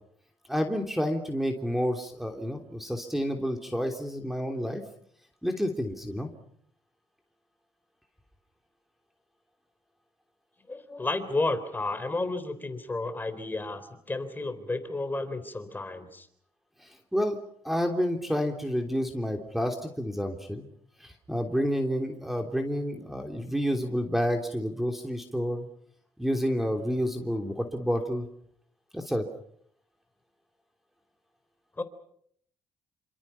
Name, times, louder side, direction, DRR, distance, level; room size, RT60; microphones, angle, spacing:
voice 1, 0.5-4.8 5.4-6.3 16.8-17.4 17.6-20.7 21.0-25.7 26.2-28.3 28.9-29.3, equal, ahead, 4 dB, 3.3 m, -29 dB
voice 2, 10.7-16.3 31.8-31.9, left 2 dB, 20° left, 10 dB, 3.8 m, -32 dB
28.0 x 26.5 x 5.8 m, 0.66 s
cardioid pair, 95°, 11 cm